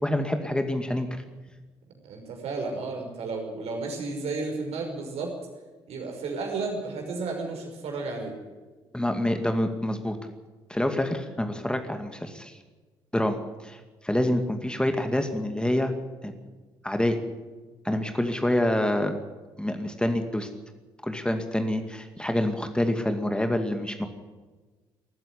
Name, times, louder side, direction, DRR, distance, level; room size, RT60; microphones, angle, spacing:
voice 1, 0.0-1.2 8.9-10.2 10.7-12.6 13.1-13.4 13.6-15.9 16.2-16.3 16.8-17.2 17.8-19.2 19.6-20.5 21.0-24.1, left 1 dB, 5° left, 6 dB, 2.3 m, -27 dB
voice 2, 2.0-5.3 5.9-8.3, right 3 dB, 60° right, 2 dB, 5.8 m, -32 dB
20.0 x 15.0 x 9.9 m, 1.3 s
figure-of-eight pair, 45°, 12 cm